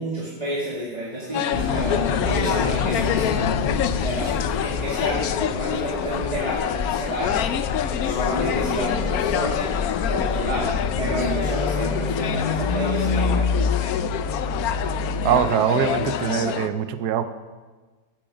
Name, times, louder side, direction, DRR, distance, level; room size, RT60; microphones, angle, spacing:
voice 1, 0.0-3.4 3.9-7.5 8.0-9.7 10.1-13.9, right 1 dB, 20° right, -6 dB, 2.0 m, -30 dB
sound 1, 1.1-12.5, left 1 dB, 90° right, 5.4 m, -40 dB
sound 2, 1.3-16.7, left 9 dB, 70° left, 0.9 m, -27 dB
sound 3, 1.5-15.4, left 4 dB, 50° left, 0.6 m, -28 dB
voice 2, 15.2-17.3, right 9 dB, 70° right, 11 dB, 1.2 m, -22 dB
14.5 x 8.8 x 5.0 m, 1.4 s
omnidirectional pair, 1.9 m